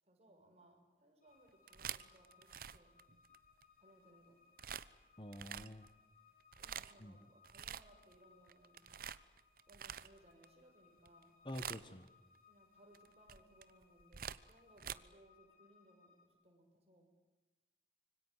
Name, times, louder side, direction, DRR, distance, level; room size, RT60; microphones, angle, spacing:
voice 1, 0.0-2.9 3.8-4.6 6.6-8.9 9.7-11.3 12.5-17.1, right 1 dB, 35° right, 2 dB, 6.7 m, -66 dB
sound 1, 1.2-16.3, left 6 dB, 45° left, 5.5 m, -69 dB
sound 2, 1.5-3.6 4.6-4.9 5.3-5.9 6.4-7.0 7.4-8.2 8.5-10.5 11.0-11.2 11.5-12.1 12.9-14.9, right 8 dB, 50° right, 0.9 m, -47 dB
voice 2, 5.2-5.9 7.0-7.1 11.4-12.1, left 1 dB, 25° left, 11 dB, 1.3 m, -47 dB
26.0 x 24.0 x 8.1 m, 1.1 s
head